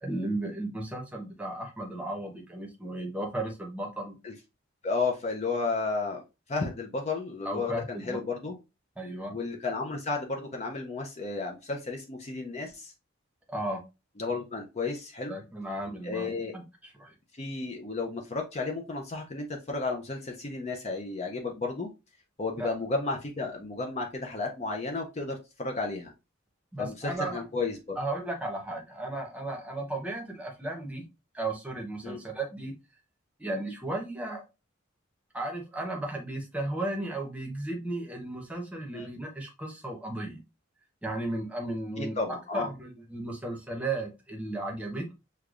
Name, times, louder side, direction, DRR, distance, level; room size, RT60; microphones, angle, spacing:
voice 1, 0.0-4.1 7.4-8.2 9.0-9.4 13.5-13.8 15.3-17.1 22.6-22.7 26.7-27.4 28.0-31.0 31.3-32.7 33.4-34.5 35.3-40.4 41.0-42.2 42.5-45.1, right 2 dB, 5° right, 1 dB, 0.8 m, -35 dB
voice 2, 4.8-6.2 6.5-8.6 9.3-12.9 14.2-15.4 16.0-16.5 17.3-21.9 22.4-26.1 26.8-28.0 32.0-32.2 38.9-39.1 42.0-42.7, left 3 dB, 30° left, 2 dB, 0.5 m, -33 dB
6.5 x 2.3 x 2.4 m, 0.27 s
head